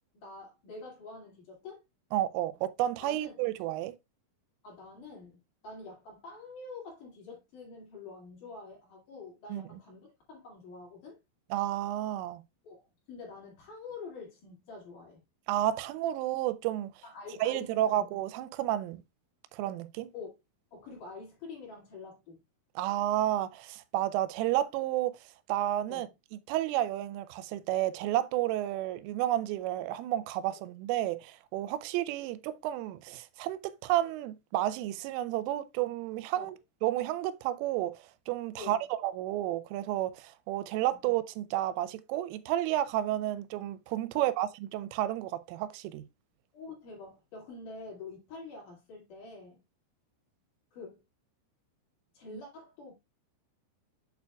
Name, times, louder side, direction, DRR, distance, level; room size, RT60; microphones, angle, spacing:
voice 1, 0.1-1.8 3.0-3.3 4.6-5.4 5.6-11.2 12.6-12.8 13.1-15.2 17.0-18.1 20.1-20.4 20.7-22.4 25.9-26.1 36.3-36.5 38.6-38.8 44.1-44.3 46.5-49.6 50.7-51.0 52.1-52.9, left 3 dB, 50° left, 3.4 m, -46 dB
voice 2, 2.1-4.0 9.5-9.6 11.5-12.4 15.5-16.9 17.4-19.0 19.5-20.1 22.8-25.2 25.5-26.1 26.5-36.6 36.8-46.0, right 13 dB, 90° right, 3.2 m, -31 dB
8.3 x 6.7 x 2.3 m
omnidirectional pair, 5.6 m